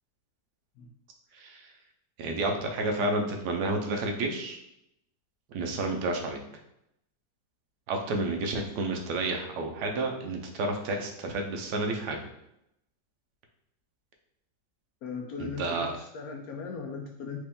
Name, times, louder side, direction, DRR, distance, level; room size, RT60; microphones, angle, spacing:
voice 1, 1.3-1.7 2.2-4.6 5.5-6.4 7.9-12.2 15.4-15.9, right 2 dB, 70° right, 3 dB, 1.2 m, -30 dB
voice 2, 15.0-17.4, left 5 dB, 75° left, 1 dB, 0.9 m, -38 dB
4.5 x 3.0 x 3.5 m, 0.81 s
omnidirectional pair, 2.0 m